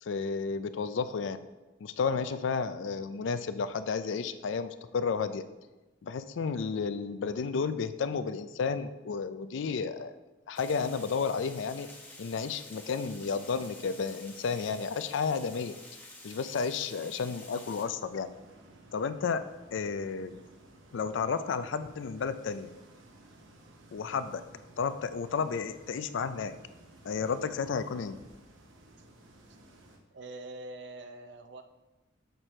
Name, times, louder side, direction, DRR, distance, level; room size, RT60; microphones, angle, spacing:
voice 1, 0.0-1.4 1.8-5.4 6.0-10.1 10.5-11.9 12.2-15.8 16.2-18.3 18.9-19.4 19.7-20.4 20.9-22.7 23.9-24.4 24.8-26.5 27.0-28.2, left 5 dB, 70° left, 12 dB, 0.4 m, -32 dB
Water, 10.5-17.8, left 2 dB, 10° left, 0.9 m, -50 dB
sound 1, 18.0-30.0, right 1 dB, 85° right, 0.9 m, -56 dB
voice 2, 30.1-31.6, right 2 dB, 60° right, 7 dB, 0.5 m, -44 dB
6.7 x 4.5 x 4.3 m, 1.1 s
head